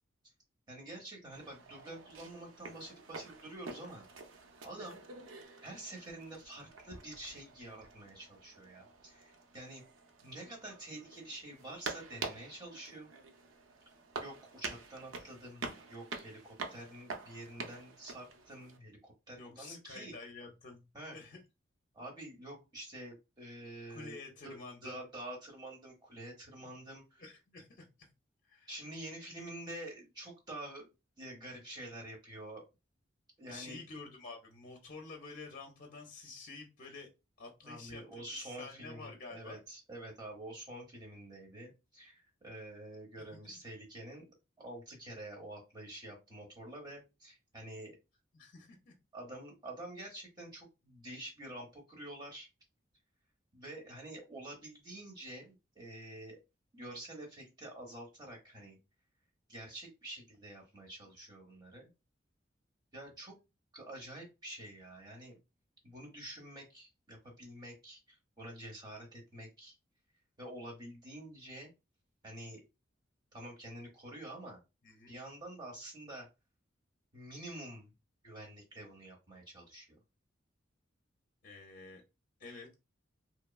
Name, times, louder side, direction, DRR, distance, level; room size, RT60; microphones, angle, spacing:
voice 1, 0.7-4.0 4.6-5.0 5.6-9.8 10.2-13.1 14.2-20.1 20.9-21.2 21.9-24.2 24.4-27.2 28.7-30.9 31.2-32.6 33.4-33.8 37.6-48.0 49.1-52.5 53.5-56.4 56.7-58.8 59.5-61.9 62.9-63.4 63.7-65.4 65.8-69.7 70.4-71.7 72.2-72.6 73.3-74.6 75.1-76.3 77.1-77.9 78.2-80.0, right 1 dB, 20° right, -1 dB, 1.0 m, -48 dB
sound 1, 1.3-18.8, right 4 dB, 90° right, 0.5 m, -47 dB
voice 2, 19.3-20.9 21.1-21.4 23.9-25.0 26.6-26.7 27.2-28.1 28.4-28.7 33.5-37.1 37.4-39.6 43.2-43.6 48.3-48.9 74.8-75.2 81.4-82.0 82.4-82.8, left 3 dB, 45° left, 2 dB, 0.5 m, -49 dB
2.9 x 2.2 x 2.3 m, 0.26 s
head